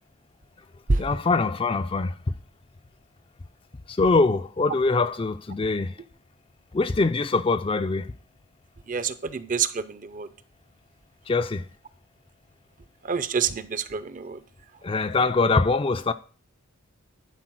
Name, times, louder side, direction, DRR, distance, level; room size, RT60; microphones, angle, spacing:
voice 1, 1.0-2.1 3.9-5.9 6.7-8.1 11.3-11.7 14.8-16.1, left 3 dB, 25° left, 0.3 m, -23 dB
voice 2, 8.9-10.3 13.0-14.4, right 5 dB, 35° right, 0.5 m, -27 dB
11.5 x 4.4 x 6.1 m
head